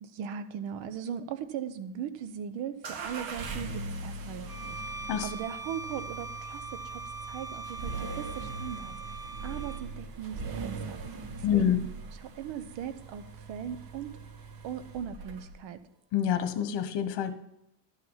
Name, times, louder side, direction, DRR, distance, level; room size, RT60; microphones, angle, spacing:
voice 1, 0.0-9.1 9.4-11.8 12.2-14.1 14.6-15.8, right 8 dB, 80° right, 12 dB, 1.0 m, -39 dB
sound 1, 2.8-15.7, right 3 dB, 55° right, 1.2 m, -41 dB
Bowed string instrument, 4.5-9.9, right 3 dB, 5° right, 0.8 m, -41 dB
voice 2, 11.4-11.8 16.1-17.3, left 9 dB, 65° left, 9 dB, 1.2 m, -27 dB
12.0 x 5.7 x 5.6 m, 0.84 s
cardioid pair, 150°, 44 cm